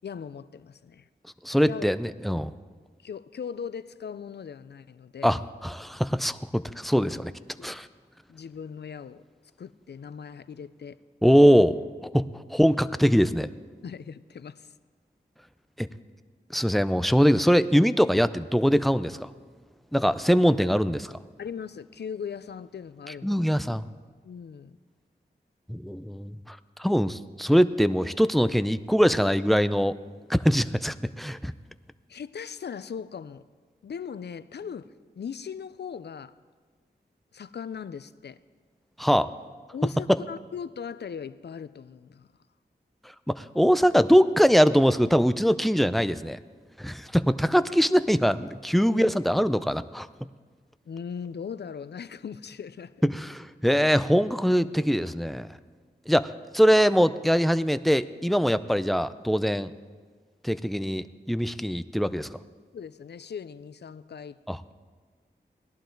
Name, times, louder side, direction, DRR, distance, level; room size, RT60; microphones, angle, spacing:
voice 1, 0.0-1.1 1.7-1.9 3.0-5.4 7.6-7.7 8.3-9.2 9.6-11.0 12.2-12.3 13.8-14.7 21.4-23.4 24.2-24.7 32.1-33.4 33.8-34.9 35.2-36.3 37.3-38.4 39.7-42.3 48.9-49.1 50.9-53.1 62.7-64.4, left 7 dB, 70° left, 15 dB, 0.5 m, -39 dB
voice 2, 1.4-2.5 5.2-7.3 7.6-7.9 11.2-13.5 15.8-15.9 16.5-19.3 19.9-21.2 23.2-23.9 25.7-30.0 30.3-31.5 39.0-39.3 43.3-46.4 46.8-50.1 53.0-55.5 56.1-59.7 60.4-62.3 64.5-64.6, equal, ahead, 13 dB, 0.5 m, -22 dB
18.0 x 11.5 x 3.9 m, 1.5 s
cardioid pair, 45°, 18 cm